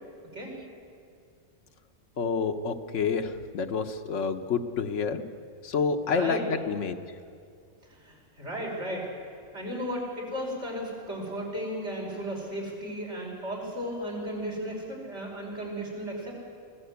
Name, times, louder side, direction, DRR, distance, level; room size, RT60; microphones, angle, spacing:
voice 1, 2.2-5.2 5.6-6.9, left 5 dB, 85° left, 5 dB, 1.3 m, -28 dB
voice 2, 6.1-6.4 7.9-9.3 9.5-16.4, equal, 70° right, -2 dB, 5.6 m, -35 dB
23.5 x 15.0 x 8.2 m, 2.3 s
omnidirectional pair, 1.2 m